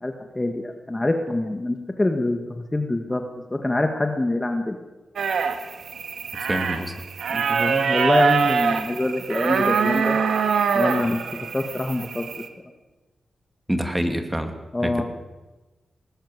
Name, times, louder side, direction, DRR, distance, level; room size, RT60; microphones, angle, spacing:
voice 1, 0.0-3.2 3.5-4.8 7.3-10.2 10.7-11.2 11.5-12.2 14.7-15.0, left 2 dB, 15° left, 5 dB, 1.7 m, -25 dB
sound 1, 5.2-12.5, right 6 dB, 90° right, 1.9 m, -24 dB
voice 2, 6.5-6.9 13.7-14.5 14.8-15.0, equal, 10° right, 6 dB, 2.6 m, -26 dB
20.0 x 19.0 x 8.2 m, 1.1 s
wide cardioid pair, 125°, 0 cm